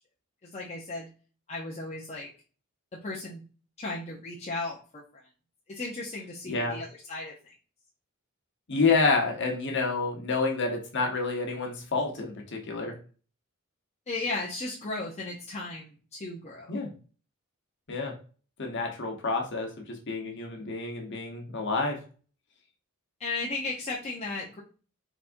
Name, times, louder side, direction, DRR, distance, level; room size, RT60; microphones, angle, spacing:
voice 1, 0.4-1.1 1.5-2.3 3.0-3.4 3.8-5.2 5.7-7.5 14.1-16.7 23.2-24.6, left 3 dB, 30° left, -4 dB, 0.6 m, -35 dB
voice 2, 6.5-6.8 8.7-12.9 16.7-16.9 17.9-18.1 18.6-19.7 20.1-22.0, left 4 dB, 60° left, 1 dB, 1.0 m, -28 dB
4.1 x 3.5 x 2.6 m, 0.38 s
head